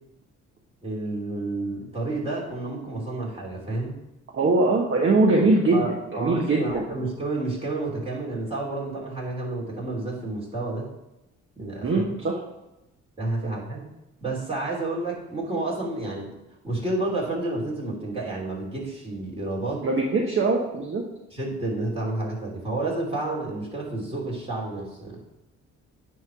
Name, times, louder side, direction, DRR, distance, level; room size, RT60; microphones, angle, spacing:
voice 1, 0.8-4.0 5.7-10.9 11.6-11.9 13.2-13.8 14.2-16.3 16.6-19.9 21.3-25.2, right 2 dB, 20° right, -4 dB, 2.9 m, -30 dB
voice 2, 4.3-6.8 11.8-12.4 19.8-21.0, right 3 dB, 40° right, 0 dB, 1.0 m, -22 dB
9.5 x 3.2 x 5.8 m, 0.93 s
cardioid pair, 90°, 30 cm